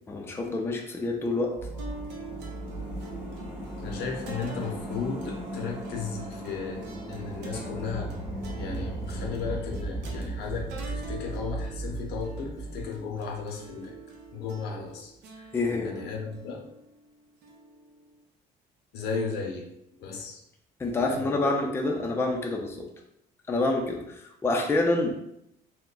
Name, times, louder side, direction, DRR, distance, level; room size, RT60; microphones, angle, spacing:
voice 1, 0.1-1.5 15.5-15.9 20.8-22.9 23.5-25.1, left 2 dB, 15° left, 1 dB, 0.4 m, -27 dB
sound 1, 1.6-14.0 14.2-14.3, right 1 dB, 10° right, 1.0 m, -36 dB
sound 2, 1.8-18.2, right 2 dB, 90° right, 0.7 m, -46 dB
voice 2, 3.8-8.1 8.6-13.9 14.3-16.6 18.9-19.7 20.0-20.4 20.9-21.5, left 5 dB, 75° left, 1 dB, 0.6 m, -35 dB
2.3 x 2.1 x 3.7 m, 0.80 s
cardioid pair, 110°, 17 cm